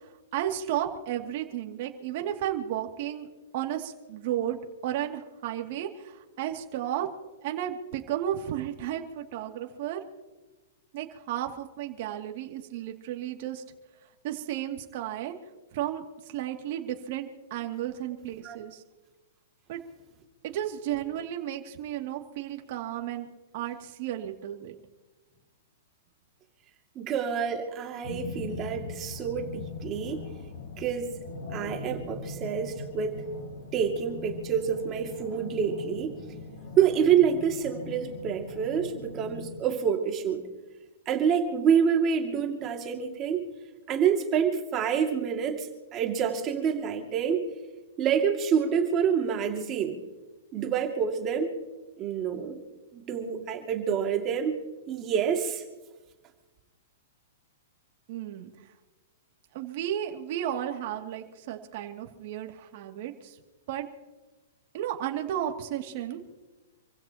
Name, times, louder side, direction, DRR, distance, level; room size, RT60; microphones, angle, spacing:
voice 1, 0.3-3.3 3.5-7.1 7.4-10.0 10.9-13.6 14.2-15.4 15.7-18.8 19.7-19.8 20.4-23.3 23.5-24.7 58.1-58.5 59.5-63.4 63.7-63.9 64.7-66.2, right 11 dB, 45° right, 3 dB, 2.5 m, -33 dB
voice 2, 27.0-30.3 30.8-31.1 31.5-33.2 33.7-36.2 36.8-40.4 41.1-43.4 43.9-47.4 48.0-50.0 50.5-51.5 52.0-52.6 52.9-54.6 54.9-55.6, right 7 dB, 25° right, 3 dB, 2.4 m, -27 dB
sound 1, 28.0-39.6, left 3 dB, 50° left, 6.0 m, -41 dB
28.0 x 16.0 x 3.0 m, 1.2 s
hypercardioid pair, 160°, 0 cm